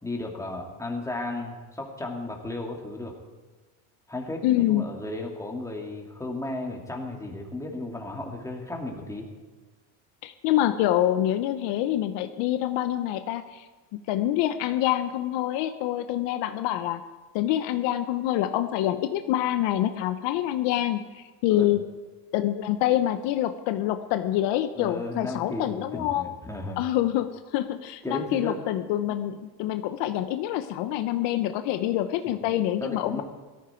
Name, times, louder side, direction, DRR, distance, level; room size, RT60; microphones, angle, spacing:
voice 1, 0.0-3.1 4.1-9.3 21.5-21.7 24.8-26.8 28.0-28.6 32.3-32.4 32.8-33.2, left 2 dB, 5° left, 0 dB, 2.7 m, -34 dB
voice 2, 4.4-4.8 10.2-13.7 14.1-17.0 17.3-21.8 22.3-26.3 26.8-33.2, left 13 dB, 70° left, 9 dB, 1.0 m, -26 dB
16.5 x 14.0 x 4.6 m, 1.3 s
supercardioid pair, 115°, 44 cm